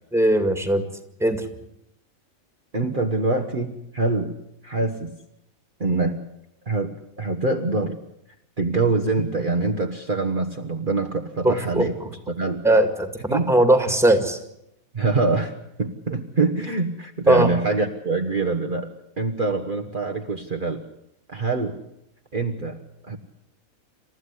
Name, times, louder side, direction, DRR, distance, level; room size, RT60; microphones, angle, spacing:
voice 1, 0.1-0.8 1.2-1.4 11.4-12.1 12.6-14.4 17.3-17.5, right 1 dB, ahead, 8 dB, 2.0 m, -19 dB
voice 2, 2.7-4.3 4.6-5.1 5.8-6.2 6.7-8.0 8.6-12.0 12.3-12.6 13.3-13.5 14.9-18.9 19.2-20.8 21.3-21.8 22.3-22.8 23.1-23.2, right 3 dB, 40° right, 3 dB, 1.4 m, -24 dB
28.0 x 14.0 x 9.8 m, 0.81 s
omnidirectional pair, 1.5 m